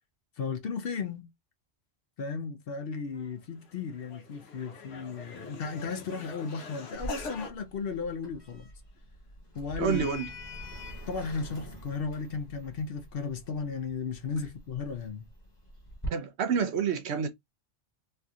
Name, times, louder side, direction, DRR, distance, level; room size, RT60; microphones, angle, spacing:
voice 1, 0.4-1.3 2.2-8.7 9.5-10.1 11.1-15.2, left 5 dB, 60° left, 0.7 m, -35 dB
sound 1, 3.1-3.3 3.6-7.5, left 4 dB, 90° left, 1.1 m, -44 dB
Sliding door, 6.9-16.1, left 1 dB, 20° left, 1.1 m, -45 dB
voice 2, 9.8-10.3 16.1-17.3, right 7 dB, 70° right, 0.9 m, -28 dB
3.2 x 2.7 x 2.3 m
omnidirectional pair, 1.2 m